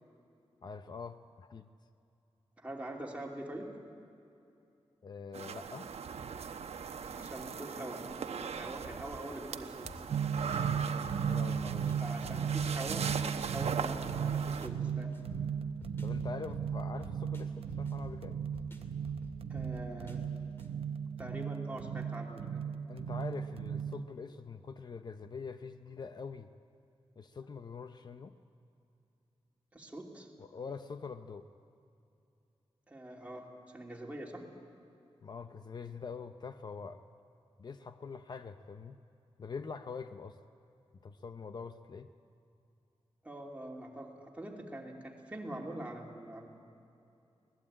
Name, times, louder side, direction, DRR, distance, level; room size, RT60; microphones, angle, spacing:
voice 1, 0.6-1.7 5.0-5.9 10.5-10.8 11.3-12.0 16.0-18.4 22.9-26.5 27.2-28.4 30.4-31.5 35.2-37.0 37.6-39.0 39.4-40.4 41.0-42.1, left 5 dB, 40° left, 9 dB, 0.6 m, -44 dB
voice 2, 2.6-3.7 7.1-10.0 12.0-15.1 19.5-20.2 21.2-22.6 29.7-30.3 32.9-34.4 43.2-46.5, right 1 dB, 15° right, -1 dB, 2.8 m, -44 dB
sound 1, 5.3-14.7, right 6 dB, 90° right, 1.0 m, -40 dB
sound 2, 9.8-20.7, left 2 dB, 20° left, 2.4 m, -50 dB
sound 3, 10.1-24.0, right 7 dB, 65° right, 0.7 m, -36 dB
24.5 x 19.0 x 8.8 m, 2.7 s
wide cardioid pair, 175°, 11 cm